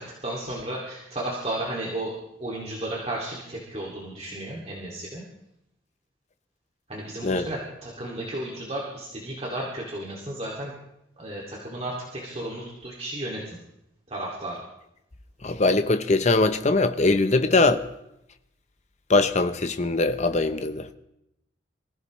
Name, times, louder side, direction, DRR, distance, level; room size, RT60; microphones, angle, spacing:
voice 1, 0.0-2.1 2.4-5.2 6.9-10.7 11.2-13.6 14.1-14.6, right 1 dB, 35° right, 2.4 m, -33 dB
voice 2, 15.4-17.8 19.1-20.9, left 3 dB, 35° left, 0.8 m, -21 dB
26.0 x 15.5 x 3.2 m
head